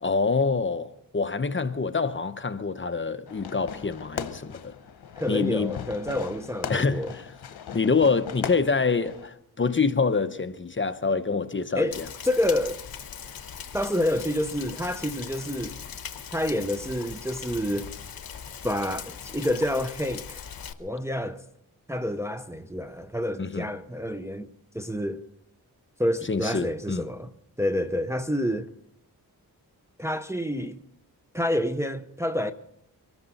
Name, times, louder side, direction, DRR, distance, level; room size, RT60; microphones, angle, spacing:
voice 1, 0.0-4.7 5.3-5.8 6.7-7.2 7.7-12.1 23.4-23.7 26.3-27.0, left 4 dB, 30° left, 0.8 m, -26 dB
Fireworks, 3.3-9.3, left 8 dB, 90° left, 0.9 m, -39 dB
voice 2, 5.2-7.1 11.7-12.0 12.2-12.8 13.7-15.8 16.3-17.9 18.6-20.4 20.8-21.4 21.9-24.5 24.7-25.2 26.0-27.3 27.6-28.7 30.0-30.8 31.3-32.5, left 1 dB, 5° right, 0.7 m, -28 dB
Rain, 11.9-20.7, left 7 dB, 65° left, 1.1 m, -40 dB
23.5 x 13.5 x 4.1 m
wide cardioid pair, 85°, 38 cm